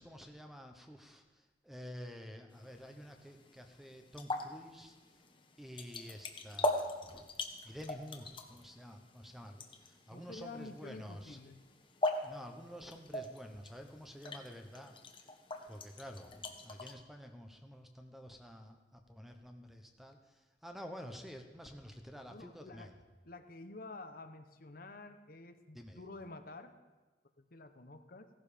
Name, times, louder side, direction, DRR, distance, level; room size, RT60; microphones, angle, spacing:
voice 1, 0.0-5.0 5.6-7.3 7.6-11.4 12.2-15.3 15.7-23.0 25.7-26.0, equal, ahead, 5 dB, 1.0 m, -50 dB
sound 1, 2.5-16.9, left 1 dB, 30° left, 1.2 m, -42 dB
voice 2, 10.1-11.6 22.3-22.9 23.2-26.7 27.4-28.3, left 2 dB, 55° left, 8 dB, 1.0 m, -49 dB
16.5 x 12.0 x 5.1 m, 1.3 s
head